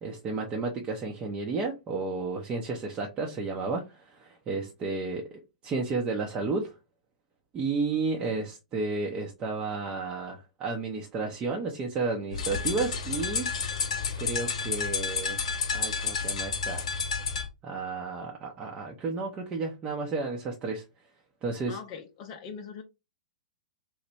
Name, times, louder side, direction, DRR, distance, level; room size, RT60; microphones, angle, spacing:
voice 1, 0.0-6.7 7.5-13.5 14.2-15.4 15.7-16.8 17.6-20.8 21.4-21.8, right 3 dB, 25° right, 0.6 m, -32 dB
sound 1, 12.3-17.5, left 5 dB, 60° left, 0.9 m, -30 dB
voice 2, 21.7-22.8, left 6 dB, 40° left, 0.5 m, -41 dB
3.0 x 2.1 x 4.1 m
hypercardioid pair, 120°, 4 cm